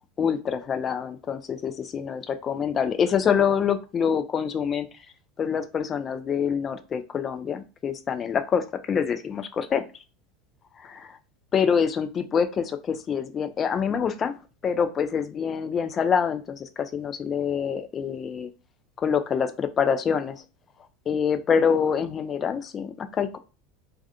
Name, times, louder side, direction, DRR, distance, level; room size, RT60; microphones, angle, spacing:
voice 1, 0.2-4.9 5.4-9.8 10.8-11.2 11.5-14.3 14.6-18.5 19.0-20.4 21.1-23.4, left 7 dB, 30° left, 9 dB, 0.3 m, -26 dB
2.3 x 2.2 x 2.5 m, 0.33 s
figure-of-eight pair, 80°, 0 cm